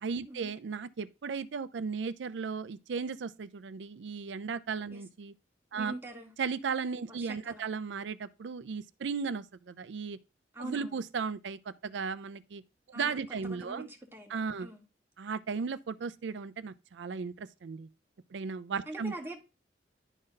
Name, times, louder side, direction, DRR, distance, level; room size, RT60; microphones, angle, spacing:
voice 1, 0.0-5.3 5.7-5.9 6.4-10.2 10.6-12.6 12.9-13.9 14.3-14.7 15.2-17.9 18.3-19.1, right 5 dB, 90° right, 0.4 m, -36 dB
voice 2, 5.7-6.3 7.1-7.7 10.5-10.9 12.9-14.8 18.9-19.4, right 1 dB, 15° right, 1.7 m, -44 dB
11.0 x 3.9 x 5.3 m
head